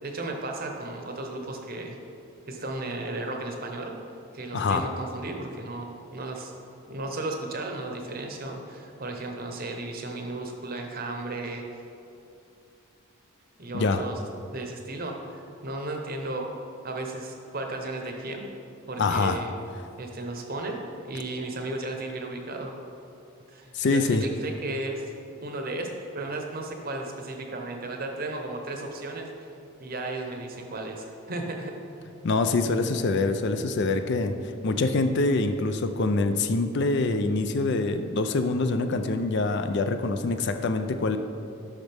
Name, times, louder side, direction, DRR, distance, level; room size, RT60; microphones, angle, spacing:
voice 1, 0.0-2.0 2.5-3.9 4.3-6.5 6.9-11.8 13.6-14.2 14.5-16.5 16.8-18.4 18.9-19.5 20.0-20.8 21.0-22.7 23.5-25.1 25.4-29.5 29.8-32.0, right 2 dB, 40° right, 3 dB, 0.8 m, -34 dB
voice 2, 4.5-4.9 13.7-14.0 19.0-19.4 23.7-24.2 32.2-41.2, left 3 dB, 50° left, 8 dB, 0.4 m, -25 dB
10.5 x 6.2 x 3.4 m, 2.6 s
head